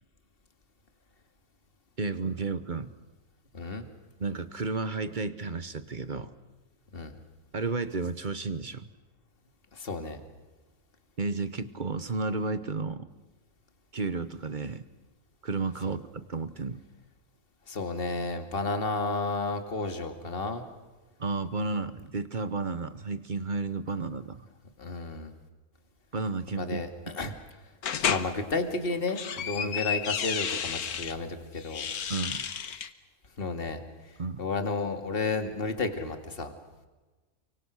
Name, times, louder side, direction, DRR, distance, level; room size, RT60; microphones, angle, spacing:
voice 1, 2.0-2.9 4.2-6.3 7.5-8.9 11.2-13.1 13.9-14.8 15.4-16.8 21.2-24.4 26.1-27.3 29.6-29.7 32.1-32.4 34.2-34.4, right 3 dB, 35° right, 13 dB, 1.0 m, -32 dB
voice 2, 3.5-3.9 6.9-7.2 9.7-10.2 15.9-16.0 17.7-20.6 24.8-25.3 26.6-27.3 28.0-31.9 33.4-33.8 34.4-36.5, left 3 dB, 35° left, 7 dB, 2.3 m, -32 dB
sound 1, 27.8-28.3 28.9-31.1 31.6-32.9, left 8 dB, 70° left, 1.6 m, -31 dB
29.5 x 24.5 x 6.4 m, 1.2 s
omnidirectional pair, 1.6 m